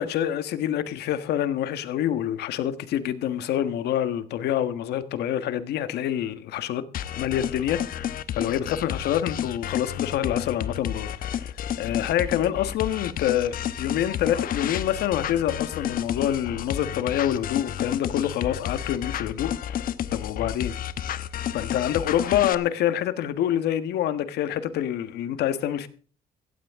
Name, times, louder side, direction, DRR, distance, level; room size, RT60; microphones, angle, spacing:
voice 1, 0.0-6.8 7.2-8.0 8.3-11.5 11.8-20.7 21.5-25.9, left 11 dB, 75° left, 1.5 m, -26 dB
sound 1, 6.9-22.6, left 10 dB, 55° left, 1.1 m, -31 dB
16.0 x 15.5 x 3.7 m
cardioid pair, 110°, 17 cm